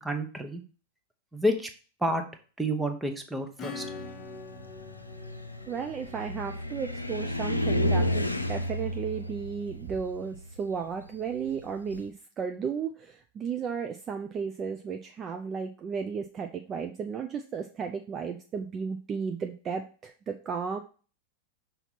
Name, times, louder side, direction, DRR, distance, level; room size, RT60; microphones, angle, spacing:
voice 1, 0.0-0.6 1.3-1.7 2.0-2.2 2.6-3.8, equal, 5° right, 4 dB, 1.0 m, -29 dB
Acoustic guitar / Strum, 3.6-7.9, left 5 dB, 20° left, 1.0 m, -44 dB
Car, 3.8-12.1, left 1 dB, 85° left, 0.6 m, -32 dB
voice 2, 5.7-20.8, right 6 dB, 25° right, 5 dB, 0.5 m, -34 dB
5.7 x 4.1 x 4.1 m, 0.37 s
figure-of-eight pair, 90°, 0 cm